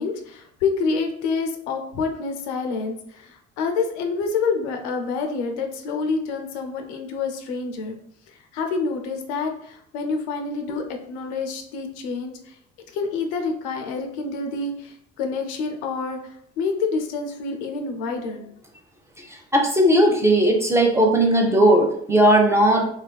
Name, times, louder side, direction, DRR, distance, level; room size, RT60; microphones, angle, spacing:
voice 1, 0.0-8.0 8.3-12.6 12.9-18.5, left 4 dB, 80° left, 4 dB, 0.5 m, -27 dB
voice 2, 19.5-22.9, right 1 dB, 10° right, 1 dB, 0.5 m, -17 dB
2.7 x 2.4 x 2.2 m, 0.66 s
hypercardioid pair, 55°, 33 cm